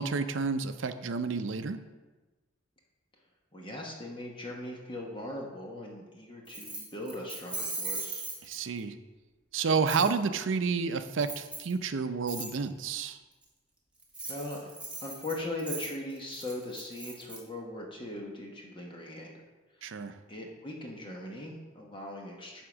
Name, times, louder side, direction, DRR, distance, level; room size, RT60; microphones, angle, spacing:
voice 1, 0.0-1.8 8.4-8.9 9.5-13.2 19.8-20.1, right 5 dB, 70° right, 10 dB, 0.5 m, -30 dB
voice 2, 3.5-8.2 14.3-14.7 15.0-19.4 19.8-19.9 20.3-22.6, left 1 dB, 25° left, -1 dB, 1.0 m, -40 dB
Keys jangling, 6.5-8.8 9.9-10.1 11.2-11.7 12.3-12.5 14.0-17.4, right 3 dB, 5° right, 1.4 m, -39 dB
9.4 x 3.6 x 6.1 m, 1.2 s
head